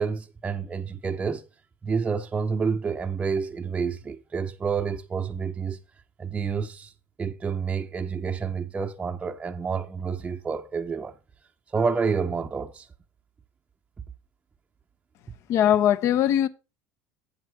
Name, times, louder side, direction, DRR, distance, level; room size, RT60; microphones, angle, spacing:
voice 1, 0.0-1.5 1.8-5.8 6.2-6.9 7.2-11.1 11.7-12.9, right 5 dB, 20° right, 0.6 m, -29 dB
voice 2, 15.5-16.5, left 10 dB, 55° left, 0.7 m, -20 dB
8.0 x 7.3 x 4.7 m
supercardioid pair, 110°, 6 cm